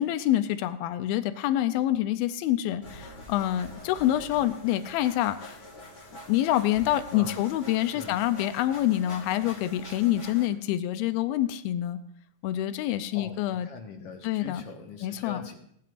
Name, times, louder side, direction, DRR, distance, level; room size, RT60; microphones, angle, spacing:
voice 1, 0.0-5.6 6.3-12.0 12.4-13.7 14.2-14.6 15.0-15.4, left 13 dB, 90° left, 11 dB, 2.5 m, -26 dB
sound 1, 2.8-10.5, left 1 dB, 30° left, 1.6 m, -45 dB
voice 2, 7.8-8.2 13.1-15.6, left 4 dB, 55° left, 3 dB, 1.8 m, -42 dB
18.5 x 13.0 x 2.5 m, 0.68 s
omnidirectional pair, 4.1 m